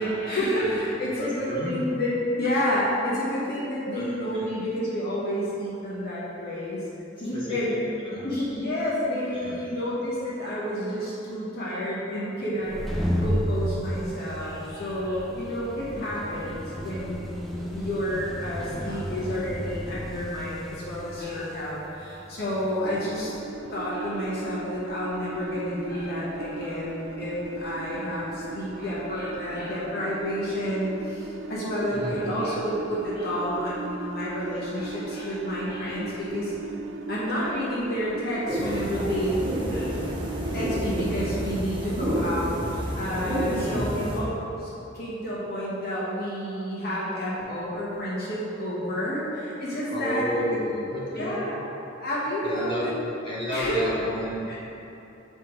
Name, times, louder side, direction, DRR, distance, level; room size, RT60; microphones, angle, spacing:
voice 1, 0.0-2.1 2.4-6.8 7.2-7.8 8.2-23.3 23.7-36.5 37.1-39.4 39.7-40.0 40.3-50.2 51.1-51.6 52.0-52.9 53.5-53.8 54.5-54.6, equal, 55° left, -7 dB, 1.1 m, -30 dB
voice 2, 1.1-1.7 3.9-4.5 7.3-7.8 8.1-8.3 9.3-9.6 18.8-19.3 31.9-32.3 43.7-44.3 49.9-51.4 52.4-52.9 53.2-54.4, equal, 25° left, -8 dB, 1.2 m, -32 dB
sound 1, 12.5-23.0, equal, ahead, 0.5 m, -33 dB
sound 2, 22.8-41.6, right 3 dB, 75° right, 0.4 m, -38 dB
sound 3, 38.5-44.2, equal, 25° right, 0.9 m, -29 dB
6.7 x 4.9 x 3.0 m, 2.9 s
head